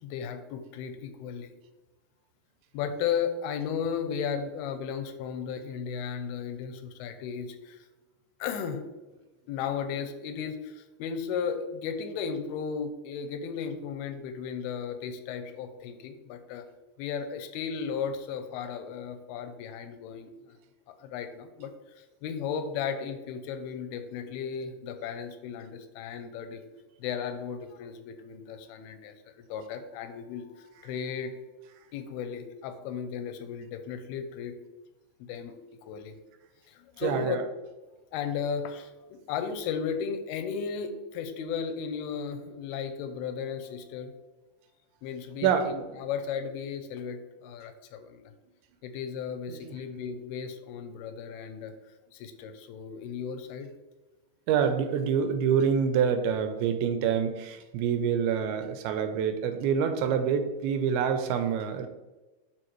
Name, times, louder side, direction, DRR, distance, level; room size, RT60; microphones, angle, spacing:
voice 1, 0.0-1.5 2.7-7.9 8.4-8.8 9.1-16.7 17.0-20.5 21.0-26.6 27.0-29.1 29.5-31.4 31.9-34.6 35.2-35.5 35.8-36.1 36.7-37.4 38.1-44.1 45.0-48.3 48.8-51.7 52.1-53.7, left 7 dB, 90° left, 9 dB, 2.6 m, -35 dB
voice 2, 37.0-37.4 45.4-45.9 49.5-49.6 54.5-61.9, right 7 dB, 85° right, 8 dB, 2.6 m, -26 dB
11.5 x 4.1 x 3.1 m, 1.1 s
omnidirectional pair, 4.4 m